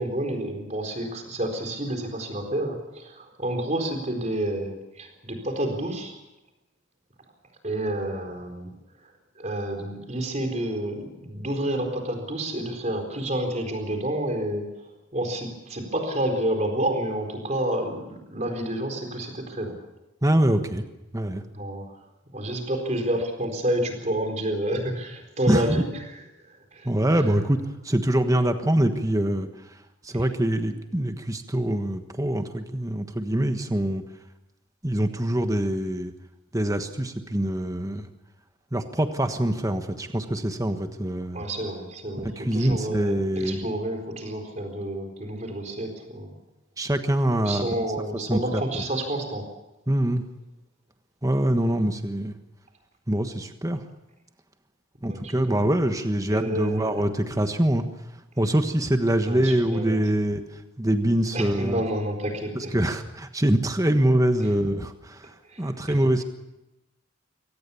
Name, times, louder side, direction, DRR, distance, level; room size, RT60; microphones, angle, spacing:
voice 1, 0.0-6.2 7.6-8.7 9.0-19.8 21.5-21.9 22.3-26.9 41.3-46.3 47.4-49.5 55.1-55.6 56.3-57.0 59.2-60.2 61.3-62.7 64.4-64.5 65.4-66.1, right 1 dB, 35° right, 4 dB, 4.2 m, -29 dB
voice 2, 20.2-20.8 21.1-21.4 25.5-25.8 26.8-27.6 27.8-29.5 30.0-34.0 34.8-36.1 36.5-38.1 38.7-41.4 42.4-43.7 46.8-47.6 48.3-48.6 49.9-50.2 51.2-52.3 53.1-53.8 55.0-57.8 58.4-60.4 60.8-61.8 62.5-65.3 65.6-66.2, right 1 dB, 15° right, 7 dB, 1.3 m, -24 dB
24.0 x 18.5 x 7.0 m, 0.95 s
head